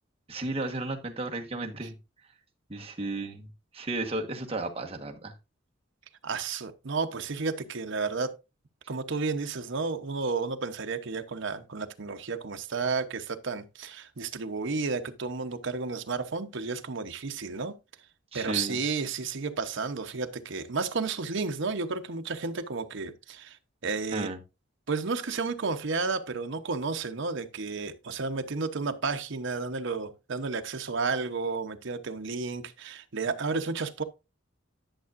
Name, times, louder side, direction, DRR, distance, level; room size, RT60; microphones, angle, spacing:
voice 1, 0.3-1.9 2.7-3.5 3.7-5.3 18.3-18.8 24.1-24.4, right 2 dB, 30° right, 1.3 m, -34 dB
voice 2, 6.2-8.4 8.9-17.8 18.3-23.6 23.8-24.3 24.9-34.0, right 4 dB, 65° right, 0.9 m, -32 dB
11.5 x 6.8 x 2.5 m
head